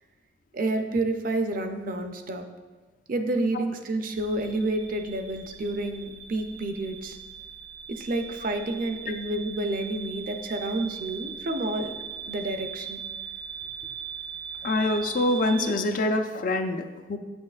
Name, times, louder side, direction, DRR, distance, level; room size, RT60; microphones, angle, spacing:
voice 1, 0.5-2.4 3.1-7.2 7.9-12.0 12.3-13.0, right 2 dB, 45° right, 6 dB, 0.5 m, -29 dB
sound 1, 4.1-15.7, right 7 dB, 75° right, 0.8 m, -40 dB
voice 2, 14.6-17.2, left 2 dB, 45° left, 7 dB, 0.4 m, -25 dB
8.3 x 6.2 x 2.4 m, 1.3 s
head